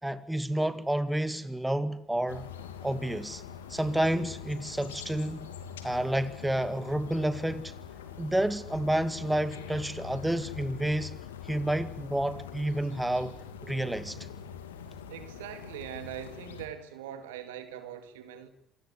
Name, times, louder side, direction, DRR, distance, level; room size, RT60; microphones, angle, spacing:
voice 1, 0.0-2.5 2.8-3.4 3.7-5.5 5.8-7.7 8.2-11.2 11.4-13.4 13.6-14.2, right 1 dB, 5° right, 2.2 m, -30 dB
sound 1, 2.3-16.7, left 8 dB, 85° left, 2.6 m, -44 dB
voice 2, 15.1-18.5, right 10 dB, 75° right, 2.4 m, -42 dB
28.0 x 18.5 x 9.9 m
hypercardioid pair, 60°, 0 cm